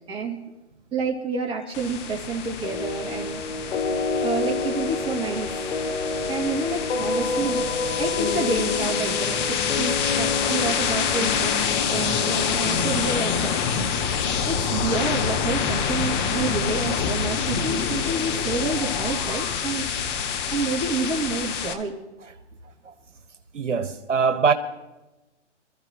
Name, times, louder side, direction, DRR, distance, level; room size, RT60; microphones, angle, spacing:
voice 1, 0.1-0.6 0.9-3.4 3.6-3.9 4.2-5.5 6.0-7.6 8.0-19.9 20.5-21.9, right 3 dB, 15° right, 2.6 m, -29 dB
sound 1, 1.7-21.7, left 7 dB, 10° left, 0.4 m, -27 dB
sound 2, 2.6-13.4, left 3 dB, 60° left, 4.1 m, -29 dB
voice 2, 22.6-22.9 23.5-24.5, right 5 dB, 80° right, 1.5 m, -23 dB
26.5 x 14.5 x 3.0 m
hypercardioid pair, 135°, 36 cm